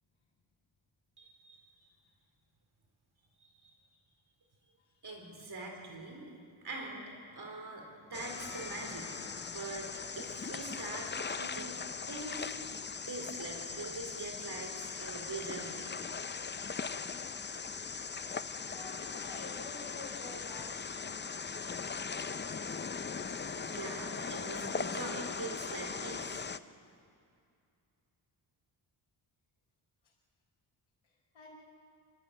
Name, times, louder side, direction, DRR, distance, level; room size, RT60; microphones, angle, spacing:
voice 1, 1.2-1.6 3.4-3.7 5.0-6.3 6.6-9.9 10.2-11.8 12.1-12.5 13.0-15.8 23.5-26.4, right 2 dB, 50° right, 1 dB, 4.1 m, -43 dB
sound 1, 8.1-26.6, left 5 dB, 25° left, 0.6 m, -40 dB
Doorbell, 8.2-16.3, left 2 dB, ahead, 7.7 m, -59 dB
voice 2, 18.7-21.5 31.3-31.5, left 3 dB, 70° left, -6 dB, 4.6 m, -49 dB
26.0 x 14.5 x 8.8 m, 2.4 s
cardioid pair, 90°, 47 cm